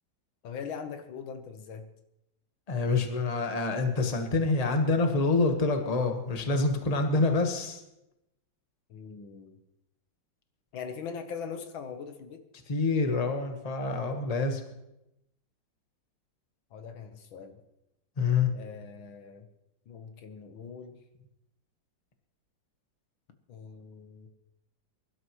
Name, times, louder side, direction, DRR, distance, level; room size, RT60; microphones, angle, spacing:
voice 1, 0.4-1.9 8.9-9.6 10.7-12.4 16.7-17.6 18.5-19.5 19.9-21.0 23.5-24.3, left 6 dB, 80° left, 7 dB, 1.9 m, -41 dB
voice 2, 2.7-7.8 12.7-14.6 18.2-18.5, left 3 dB, 20° left, 5 dB, 1.2 m, -26 dB
22.5 x 12.0 x 3.1 m, 0.87 s
omnidirectional pair, 2.1 m